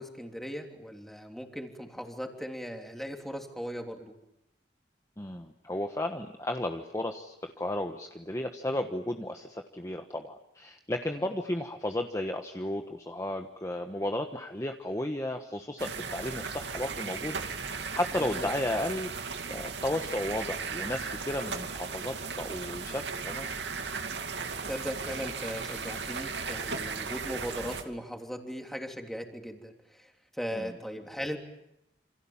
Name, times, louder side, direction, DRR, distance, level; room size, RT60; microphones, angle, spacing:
voice 1, 0.0-4.1 11.1-11.3 18.1-18.5 24.7-31.4, equal, ahead, 3 dB, 3.3 m, -38 dB
voice 2, 5.2-19.1 19.5-23.5 30.5-30.7, left 1 dB, 20° left, 5 dB, 1.3 m, -34 dB
sound 1, 15.8-27.8, right 5 dB, 90° right, 2.6 m, -36 dB
28.5 x 26.5 x 7.3 m, 0.84 s
head